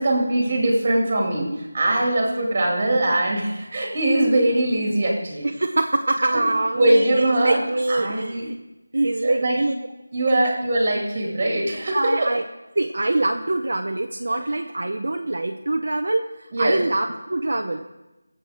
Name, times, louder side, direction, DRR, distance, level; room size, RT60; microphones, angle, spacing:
voice 1, 0.0-5.5 6.7-7.6 7.9-8.5 9.2-9.6 10.1-12.3 16.5-16.8, right 1 dB, 25° right, -1 dB, 2.4 m, -21 dB
voice 2, 5.4-8.6 8.9-9.7 11.9-12.4 12.8-17.9, right 2 dB, 55° right, 3 dB, 0.8 m, -24 dB
20.0 x 7.9 x 5.0 m, 1.0 s
figure-of-eight pair, 175°, 0 cm